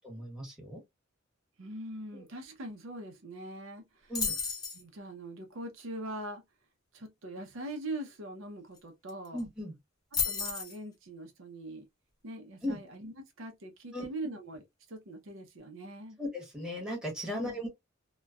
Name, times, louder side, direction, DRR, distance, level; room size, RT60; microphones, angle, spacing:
voice 1, 0.0-0.8 2.1-2.2 4.1-4.4 9.3-9.7 12.6-12.8 13.9-14.1 16.2-17.7, left 1 dB, 5° right, 1.1 m, -37 dB
voice 2, 1.6-4.1 4.7-6.4 6.9-9.4 10.2-11.9 12.2-16.2 17.3-17.6, right 1 dB, 70° right, 0.7 m, -42 dB
sound 1, 4.2-4.8 8.8-8.9 9.1-9.4 10.1-10.8, left 5 dB, 20° left, 0.7 m, -32 dB
3.0 x 2.2 x 2.3 m
head